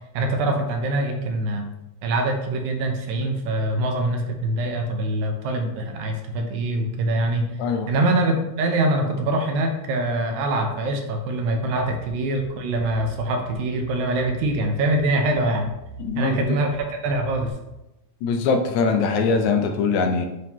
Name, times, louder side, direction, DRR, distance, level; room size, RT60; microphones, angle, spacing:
voice 1, 0.1-1.7 2.0-7.5 7.9-15.7 16.2-17.5, right 2 dB, 75° right, 3 dB, 2.0 m, -24 dB
voice 2, 7.6-7.9 16.0-16.6 18.2-20.3, left 4 dB, 80° left, 5 dB, 1.9 m, -22 dB
sound 1, 11.7-17.5, right 4 dB, 60° right, 2.9 m, -42 dB
9.2 x 3.7 x 2.9 m, 0.95 s
omnidirectional pair, 3.5 m